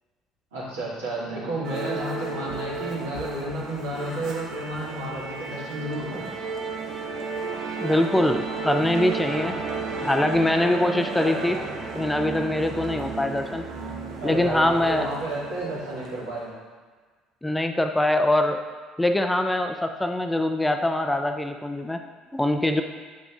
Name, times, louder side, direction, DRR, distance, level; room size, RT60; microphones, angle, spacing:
voice 1, 0.5-6.3 14.2-16.5, right 1 dB, 75° right, -7 dB, 1.8 m, -31 dB
Musical instrument, 1.6-16.3, right 4 dB, 55° right, 0.9 m, -33 dB
voice 2, 7.8-9.6 10.0-11.6 12.0-13.6 14.2-15.1 17.4-18.6 19.0-22.0 22.3-22.8, left 1 dB, 10° left, 6 dB, 0.4 m, -23 dB
8.1 x 5.0 x 2.4 m, 1.4 s
figure-of-eight pair, 55°, 0 cm